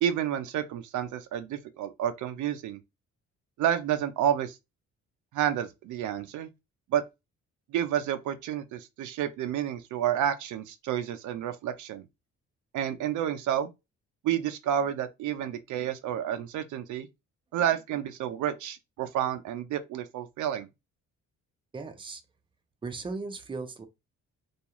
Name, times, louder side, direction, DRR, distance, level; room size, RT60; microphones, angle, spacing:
voice 1, 0.0-2.8 3.6-4.6 5.3-6.5 6.9-7.0 7.7-12.0 12.7-13.7 14.2-17.1 17.5-20.7, right 10 dB, 75° right, 0.5 m, -30 dB
voice 2, 21.7-22.2 22.8-23.9, right 3 dB, 15° right, 0.5 m, -37 dB
2.4 x 2.3 x 2.9 m
cardioid pair, 90°, 30 cm